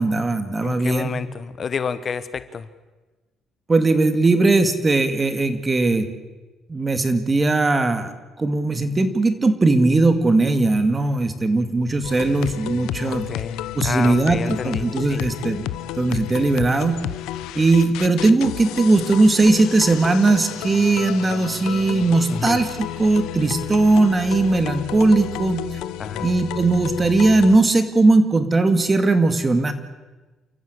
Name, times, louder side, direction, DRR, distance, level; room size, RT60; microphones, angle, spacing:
voice 1, 0.0-1.1 3.7-6.1 6.7-8.1 8.4-13.2 13.8-15.7 16.0-17.0 17.6-22.7 23.0-25.6 26.2-29.7, right 2 dB, 20° right, 10 dB, 2.3 m, -18 dB
voice 2, 0.6-2.7 13.0-15.2 22.3-22.6 26.0-26.3, left 6 dB, 40° left, 14 dB, 1.1 m, -30 dB
sound 1, 12.0-27.6, left 13 dB, 90° left, 1.1 m, -31 dB
29.5 x 14.5 x 8.2 m, 1.2 s
cardioid pair, 115°, 0 cm